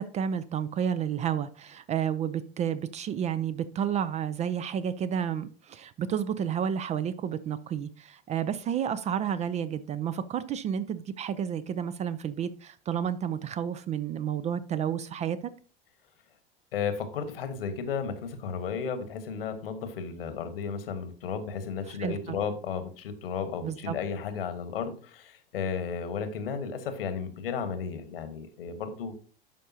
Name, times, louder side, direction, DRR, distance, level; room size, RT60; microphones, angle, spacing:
voice 1, 0.0-15.5 22.0-22.4 23.6-24.0, right 8 dB, 25° right, 14 dB, 0.4 m, -31 dB
voice 2, 16.7-29.1, left 6 dB, 70° left, 9 dB, 1.4 m, -34 dB
11.5 x 5.4 x 2.8 m, 0.39 s
figure-of-eight pair, 80°, 30 cm